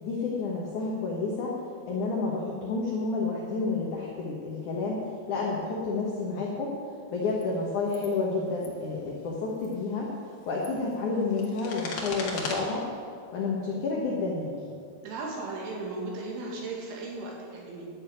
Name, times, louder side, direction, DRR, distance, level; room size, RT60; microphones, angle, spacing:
voice 1, 0.0-1.6 1.9-5.0 5.3-6.7 7.1-10.1 10.5-12.8 13.3-14.6, left 3 dB, 80° left, -2 dB, 1.7 m, -30 dB
sound 1, 7.3-7.4 7.9-8.1 8.5-8.7 9.5-9.8 10.3-12.6, left 4 dB, 60° left, 3.0 m, -38 dB
voice 2, 15.0-17.9, right 3 dB, 80° right, -2 dB, 4.6 m, -36 dB
11.5 x 6.7 x 8.9 m, 2.3 s
omnidirectional pair, 5.5 m